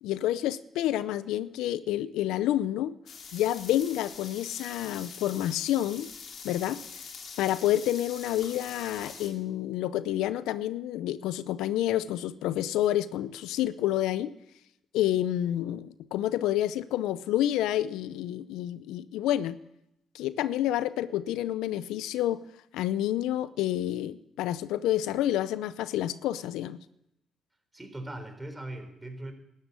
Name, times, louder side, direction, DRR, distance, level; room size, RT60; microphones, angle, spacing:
voice 1, 0.0-2.9 3.3-6.1 6.4-6.8 7.4-14.3 14.9-19.6 20.1-22.4 22.7-26.8, left 13 dB, 85° left, 16 dB, 0.5 m, -29 dB
sound 1, 3.1-9.3, left 5 dB, 65° left, 2.9 m, -44 dB
voice 2, 27.7-29.3, right 1 dB, 15° right, 7 dB, 3.8 m, -40 dB
13.0 x 11.0 x 8.4 m, 0.83 s
supercardioid pair, 60°, 0 cm